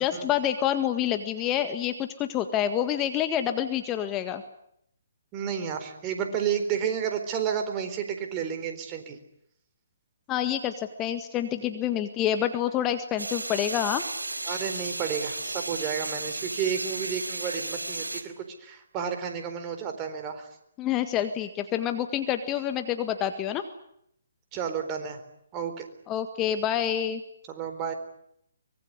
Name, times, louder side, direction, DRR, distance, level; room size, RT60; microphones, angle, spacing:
voice 1, 0.0-4.4 10.3-14.0 20.8-23.6 26.1-27.2, left 10 dB, 20° left, 8 dB, 1.7 m, -27 dB
voice 2, 5.3-9.2 14.5-20.5 24.5-25.2 25.5-25.9 27.5-27.9, right 8 dB, 25° right, 6 dB, 4.2 m, -31 dB
sound 1, 13.2-18.2, right 2 dB, 85° right, 4.3 m, -34 dB
24.5 x 21.5 x 9.7 m, 0.73 s
figure-of-eight pair, 140°, 0 cm